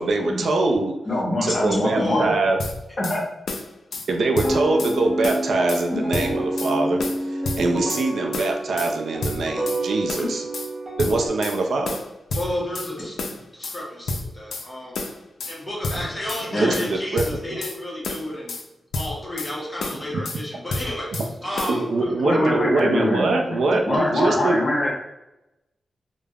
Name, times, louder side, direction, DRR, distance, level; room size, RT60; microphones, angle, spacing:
voice 1, 0.0-0.9 1.4-2.6 4.1-7.0 7.3-10.4 11.0-12.0 16.6-17.2 17.5-17.6 21.7-24.6, right 2 dB, 80° right, 3 dB, 0.4 m, -23 dB
voice 2, 1.0-2.3 3.0-3.2 10.2-10.3 16.5-16.7 22.2-24.9, left 1 dB, 35° left, -3 dB, 0.8 m, -23 dB
voice 3, 1.9-2.3 12.3-15.0 15.5-18.5 18.9-22.1, left 1 dB, 10° left, -5 dB, 0.9 m, -31 dB
sound 1, 2.6-3.2 3.5-4.1 4.3-4.9 5.2-5.8 6.1-6.7 7.0-8.0 8.3-8.9 9.2-9.8 10.1-10.7 11.0-11.6 11.8-12.9 13.2-13.8 14.1-14.7 14.9-15.6 15.8-16.4 16.7-17.8 18.0-18.6 18.9-19.5 19.8-20.4 20.7-21.3 21.6-21.8, left 2 dB, 90° left, 0.3 m, -30 dB
sound 2, 4.4-11.3, right 1 dB, 20° right, 0.6 m, -28 dB
3.3 x 2.0 x 2.3 m, 0.93 s
wide cardioid pair, 140°, 0 cm